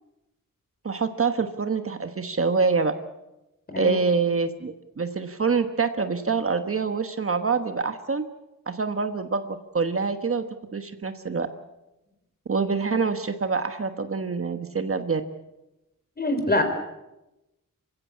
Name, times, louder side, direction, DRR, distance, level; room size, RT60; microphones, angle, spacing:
voice 1, 0.8-2.9 3.8-8.2 8.7-10.4 10.7-11.5 12.5-15.2, right 4 dB, 40° right, 8 dB, 1.3 m, -26 dB
voice 2, 16.2-16.6, left 2 dB, 30° left, 7 dB, 4.4 m, -24 dB
27.0 x 16.0 x 8.4 m, 0.96 s
wide cardioid pair, 130°, 33 cm